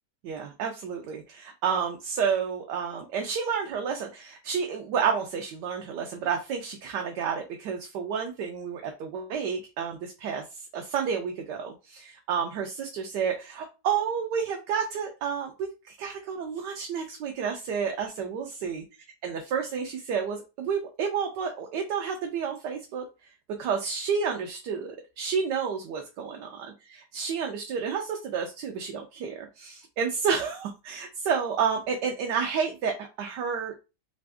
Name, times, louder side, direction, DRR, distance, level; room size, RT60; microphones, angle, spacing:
voice 1, 0.2-10.4 10.7-15.5 15.9-18.8 19.2-23.0 23.6-26.7 27.1-33.7, right 6 dB, 80° right, 2 dB, 1.3 m, -30 dB
3.4 x 2.5 x 3.3 m, 0.29 s
omnidirectional pair, 1.8 m